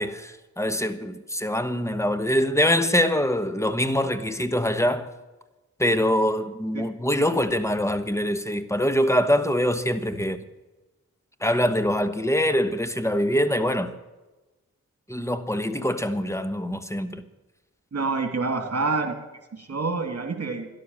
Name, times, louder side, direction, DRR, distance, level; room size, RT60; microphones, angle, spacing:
voice 1, 0.0-5.1 5.8-10.4 11.4-13.9 15.1-17.2, equal, 10° left, 1.3 m, -24 dB
voice 2, 17.9-19.2 19.5-20.7, right 4 dB, 55° right, 2.7 m, -27 dB
12.5 x 11.0 x 7.3 m
cardioid pair, 50°, 30 cm